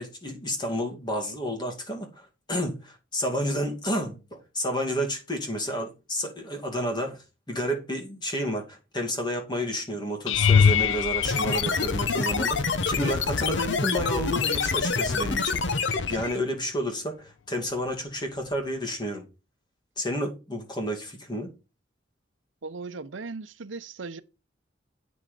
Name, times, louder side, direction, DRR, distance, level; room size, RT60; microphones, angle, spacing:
voice 1, 0.0-19.3 20.0-21.5, equal, 25° left, 2.4 m, -31 dB
sound 1, 10.3-12.5 13.2-13.7 14.0-14.2 18.5-18.6, left 6 dB, 85° left, 0.4 m, -23 dB
sound 2, 11.2-16.4, left 4 dB, 70° left, 0.9 m, -27 dB
voice 2, 22.6-24.2, right 4 dB, 85° right, 0.7 m, -37 dB
8.6 x 6.2 x 5.1 m
head